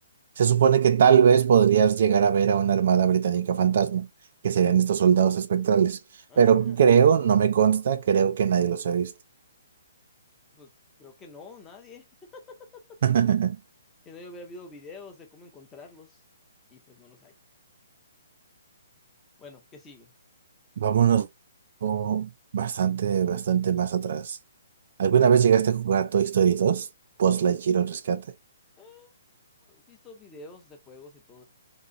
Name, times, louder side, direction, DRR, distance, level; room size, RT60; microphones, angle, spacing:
voice 1, 0.4-4.1 4.4-6.0 6.4-9.1 13.0-13.6 20.8-21.3 21.8-24.4 25.0-26.9 27.2-28.2, right 8 dB, 45° right, 0.4 m, -21 dB
voice 2, 6.3-6.8 10.6-10.7 11.0-12.1 12.3-12.8 14.0-16.2 16.7-17.3 19.4-20.1 28.8-29.1 29.7-31.4, left 3 dB, 10° left, 0.7 m, -47 dB
3.8 x 3.0 x 3.8 m
hypercardioid pair, 175°, 0 cm